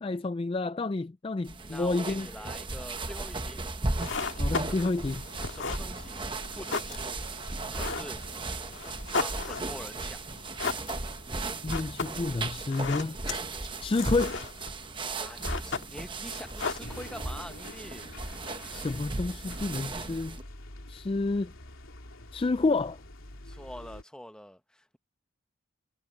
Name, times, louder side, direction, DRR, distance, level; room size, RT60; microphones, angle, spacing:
voice 1, 0.0-2.3 4.4-5.3 11.6-13.2 13.8-14.4 18.7-20.4 20.9-21.5 22.3-23.0, left 3 dB, 25° left, 0.3 m, -29 dB
sound 1, 1.4-20.4, right 2 dB, 25° right, 0.9 m, -36 dB
voice 2, 1.7-3.6 5.4-6.3 6.6-7.2 7.7-8.2 9.1-10.2 15.2-18.1 23.4-25.0, equal, 5° left, 1.1 m, -45 dB
sound 2, 3.8-17.4, left 4 dB, 65° left, 1.8 m, -37 dB
sound 3, 16.8-24.0, left 1 dB, 80° left, 3.2 m, -46 dB
head